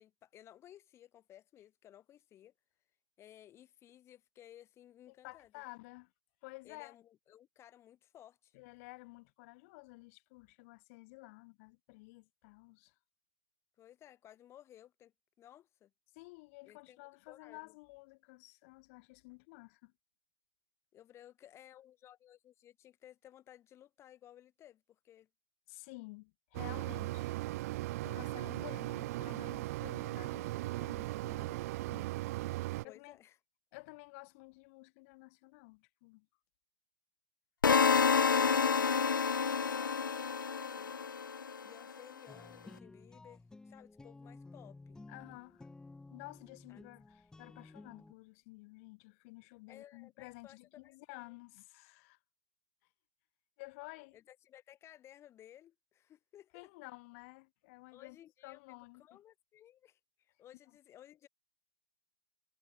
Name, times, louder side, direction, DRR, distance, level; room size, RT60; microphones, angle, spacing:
voice 1, 0.0-2.5 3.2-5.5 6.6-8.6 13.8-15.9 16.6-17.7 20.9-25.3 32.8-33.4 41.6-45.3 46.7-46.9 49.7-51.4 54.1-56.7 57.9-58.6 59.0-61.3, left 11 dB, 25° left, 6.1 m, -58 dB
voice 2, 5.1-6.1 6.4-6.9 8.5-12.9 16.1-19.9 25.7-27.3 28.0-32.1 32.5-33.2 33.7-36.3 39.5-39.7 45.1-45.7 46.1-52.2 53.6-54.2 56.5-58.2 58.4-59.2, left 26 dB, 45° left, 3.4 m, -53 dB
Mechanisms, 26.5-32.8, right 18 dB, 45° right, 1.6 m, -38 dB
sound 1, 37.6-41.7, left 6 dB, 80° left, 0.8 m, -29 dB
sound 2, 42.3-48.1, left 3 dB, 5° left, 2.3 m, -54 dB
figure-of-eight pair, 115°, 11 cm